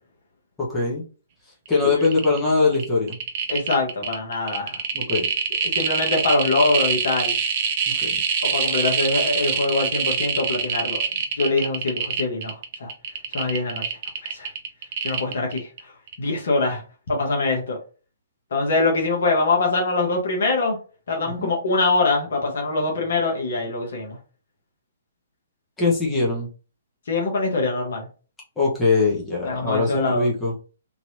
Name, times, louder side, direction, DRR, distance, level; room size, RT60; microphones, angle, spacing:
voice 1, 0.6-1.0 1.7-3.2 4.9-5.3 7.9-8.2 21.4-21.5 25.8-26.5 28.6-30.5, left 3 dB, 10° left, -5 dB, 1.1 m, -22 dB
sound 1, 1.7-1.8 2.0-2.4 2.7-15.8 16.1-16.2, right 6 dB, 40° right, 0.6 m, -24 dB
voice 2, 3.5-4.8 5.6-7.3 8.4-11.0 11.4-12.9 13.3-13.8 14.2-14.5 15.0-15.9 16.2-16.8 17.1-17.8 18.5-20.8 21.1-24.2 27.1-28.1 29.4-30.3, left 3 dB, 60° left, 0 dB, 1.1 m, -23 dB
3.1 x 2.8 x 2.7 m, 0.36 s
figure-of-eight pair, 125°, 0 cm